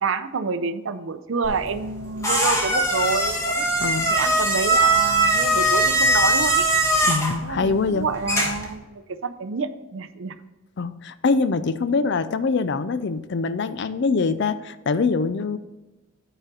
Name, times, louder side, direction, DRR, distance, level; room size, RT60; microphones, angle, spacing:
voice 1, 0.0-3.7 4.1-6.7 7.4-10.3, right 5 dB, 65° right, 11 dB, 0.5 m, -28 dB
sound 1, 1.4-8.7, right 1 dB, 15° left, 1.2 m, -21 dB
voice 2, 3.8-4.2 7.0-8.1 10.8-15.6, left 4 dB, 55° left, 13 dB, 0.4 m, -24 dB
8.8 x 5.0 x 4.0 m, 1.1 s
head